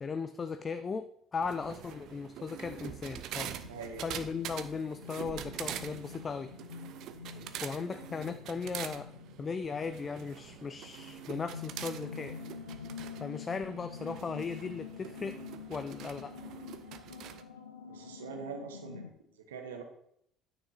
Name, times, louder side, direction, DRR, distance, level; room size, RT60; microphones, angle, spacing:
voice 1, 0.0-3.6 4.0-6.5 7.6-9.1 9.4-12.4 13.2-15.4 15.7-16.4, left 5 dB, 35° left, 9 dB, 0.5 m, -37 dB
sound 1, 1.4-17.4, right 10 dB, 60° right, 0.6 m, -45 dB
sound 2, 3.4-19.1, left 6 dB, 90° left, 0.7 m, -47 dB
voice 2, 3.7-4.1 7.2-7.6 17.9-19.8, right 5 dB, 80° right, 5 dB, 1.2 m, -44 dB
9.5 x 6.1 x 4.2 m, 0.72 s
figure-of-eight pair, 55°, 0 cm